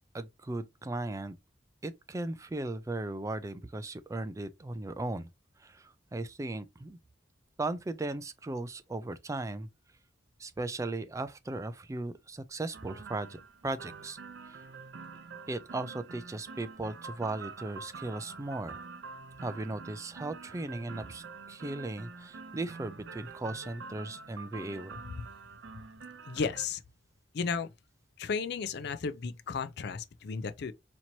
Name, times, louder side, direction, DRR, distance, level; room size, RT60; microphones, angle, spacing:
voice 1, 0.1-1.3 1.8-5.3 5.6-7.0 7.6-9.7 10.4-14.2 14.5-14.6 15.5-18.8 19.4-25.0, right 2 dB, 15° right, 0.3 m, -37 dB
sound 1, 12.7-26.7, right 4 dB, 70° right, 0.6 m, -47 dB
voice 2, 26.3-26.8 27.3-27.7 28.2-30.7, left 5 dB, 60° left, 0.4 m, -34 dB
4.3 x 2.9 x 2.6 m
head